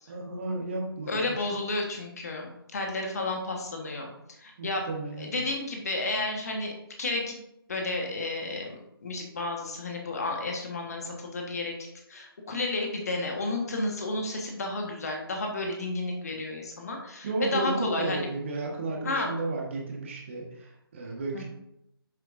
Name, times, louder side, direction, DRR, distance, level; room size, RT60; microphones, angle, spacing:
voice 1, 0.1-1.2 4.6-5.3 17.2-21.4, right 3 dB, 30° right, -1 dB, 1.4 m, -33 dB
voice 2, 1.1-4.1 4.4-4.9 5.2-6.7 7.0-7.3 7.7-11.7 12.1-18.3 19.0-19.3 21.3-21.4, left 2 dB, 40° left, 1 dB, 1.4 m, -32 dB
8.1 x 7.3 x 2.6 m, 0.81 s
figure-of-eight pair, 150°, 13 cm